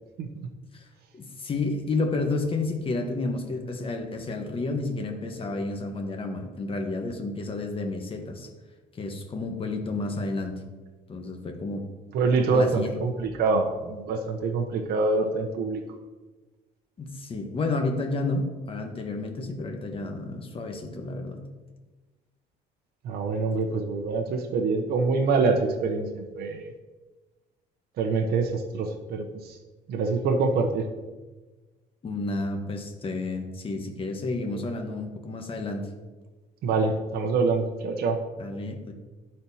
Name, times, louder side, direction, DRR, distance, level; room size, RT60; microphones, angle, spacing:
voice 1, 1.1-8.5 8.9-10.6 11.1-11.8 12.5-12.9 17.0-21.4 32.0-35.9 38.4-38.9, left 2 dB, 35° left, 4 dB, 1.1 m, -31 dB
voice 2, 12.1-15.8 23.0-26.7 28.0-29.6 29.9-30.9 36.6-38.2, right 4 dB, 65° right, 2 dB, 0.8 m, -25 dB
12.0 x 4.3 x 2.7 m, 1.2 s
cardioid pair, 110°, 17 cm